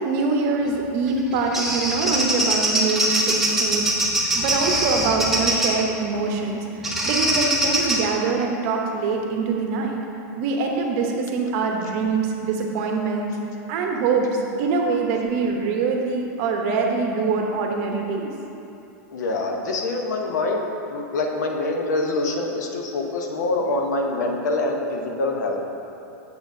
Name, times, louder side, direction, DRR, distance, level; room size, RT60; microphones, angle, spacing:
voice 1, 0.0-3.9 4.3-10.0 10.4-13.3 13.7-18.3, right 4 dB, 50° right, 1 dB, 0.8 m, -24 dB
Bird vocalization bird call bird song, 1.1-5.8 6.8-8.0, right 1 dB, 5° right, 0.7 m, -22 dB
voice 2, 19.1-25.6, left 2 dB, 85° left, 1 dB, 0.8 m, -25 dB
6.9 x 6.1 x 2.6 m, 2.7 s
supercardioid pair, 135°, 9 cm